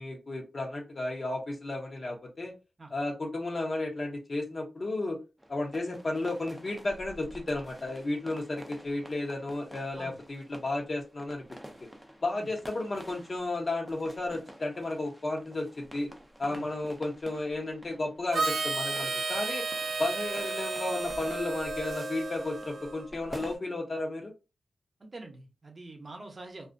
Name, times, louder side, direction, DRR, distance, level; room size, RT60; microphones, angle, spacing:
voice 1, 0.0-2.5 2.9-5.2 5.5-11.4 11.8-11.9 12.2-16.1 16.4-19.6 20.0-24.3, left 2 dB, 45° left, 1 dB, 0.8 m, -33 dB
sound 1, 5.4-23.6, equal, 5° right, 0.5 m, -50 dB
Harmonica, 18.3-23.1, right 3 dB, 80° right, 0.4 m, -33 dB
voice 2, 25.0-26.7, right 2 dB, 40° right, 4 dB, 0.7 m, -45 dB
2.4 x 2.1 x 2.5 m, 0.28 s
cardioid pair, 70°, 0 cm